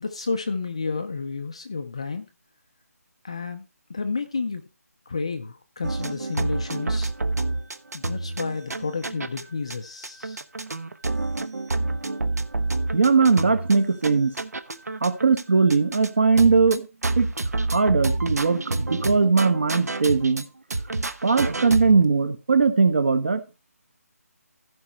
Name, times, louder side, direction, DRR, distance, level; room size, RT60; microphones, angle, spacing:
voice 1, 0.0-2.3 3.2-4.6 5.1-7.1 7.9-10.4, left 4 dB, 20° left, 0.5 m, -31 dB
sound 1, 5.8-9.4 9.7-9.8 10.0-15.4 15.7-16.1 16.4-20.5 20.7-22.0, right 2 dB, 70° right, 1.1 m, -28 dB
voice 2, 12.9-14.3 15.0-16.8 17.2-17.3 17.7-20.4 21.2-23.4, right 4 dB, 45° right, 1.4 m, -20 dB
15.0 x 5.3 x 4.3 m
hypercardioid pair, 180°, 9 cm